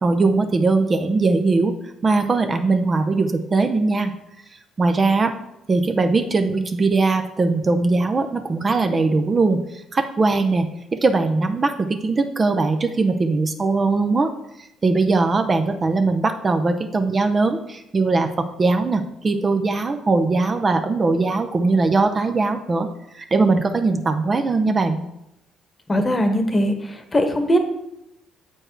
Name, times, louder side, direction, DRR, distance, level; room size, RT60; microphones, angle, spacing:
voice 1, 0.0-1.7 2.0-4.1 4.8-5.3 5.7-9.6 9.9-14.3 14.8-22.9 23.2-25.0, right 3 dB, 35° right, 7 dB, 0.6 m, -20 dB
voice 2, 25.9-26.7 27.1-27.6, equal, 25° left, 7 dB, 1.1 m, -19 dB
7.6 x 4.5 x 4.5 m, 0.85 s
hypercardioid pair, 50°, 0 cm